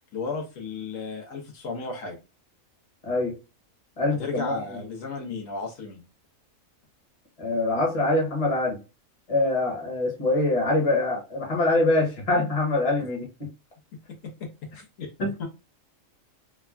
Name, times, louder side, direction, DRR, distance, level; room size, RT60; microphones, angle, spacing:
voice 1, 0.1-2.2 4.1-6.0 13.9-15.5, left 4 dB, 75° left, 1.2 m, -34 dB
voice 2, 3.0-3.4 4.0-4.8 7.4-8.8 9.3-13.3 15.2-15.3, left 2 dB, 30° left, 1.0 m, -24 dB
3.4 x 2.2 x 2.3 m
omnidirectional pair, 1.4 m